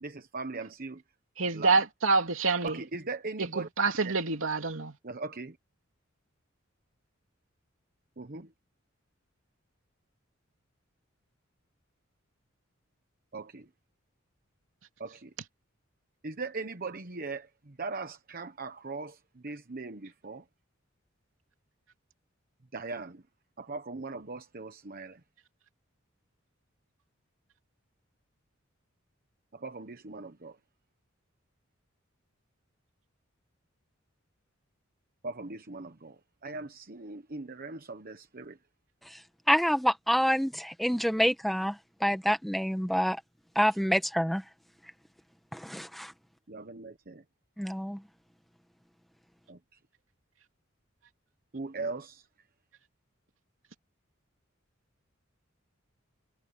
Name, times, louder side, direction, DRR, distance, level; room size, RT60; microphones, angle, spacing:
voice 1, 0.0-1.0 1.5-1.8 2.6-3.7 4.0-4.1 5.0-5.6 8.2-8.5 13.3-13.7 15.0-15.3 16.2-20.4 22.7-23.2 23.6-25.2 29.5-30.6 35.2-38.6 46.5-47.2 49.5-49.6 51.5-52.2, right 3 dB, 45° right, 1.1 m, -39 dB
voice 2, 1.4-2.8 3.6-5.0, right 4 dB, 80° right, 2.9 m, -27 dB
voice 3, 39.5-43.2 43.5-44.4 45.5-46.1 47.6-48.0, equal, ahead, 1.5 m, -27 dB
head